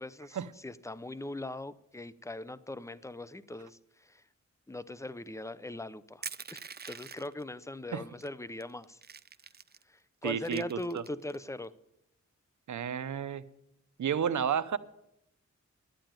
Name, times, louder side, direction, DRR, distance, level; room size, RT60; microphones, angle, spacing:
voice 1, 0.0-4.2 4.7-6.2 6.5-6.6 6.9-9.0 9.9-11.7, left 2 dB, 10° left, 0.7 m, -40 dB
Crushing, 6.2-7.4 8.2-8.3 8.6-9.8 10.3-11.4, right 6 dB, 35° right, 0.5 m, -44 dB
voice 2, 10.2-11.0 12.7-13.4 14.0-14.8, right 8 dB, 70° right, 0.7 m, -31 dB
11.5 x 9.0 x 8.9 m
cardioid pair, 60°, 30 cm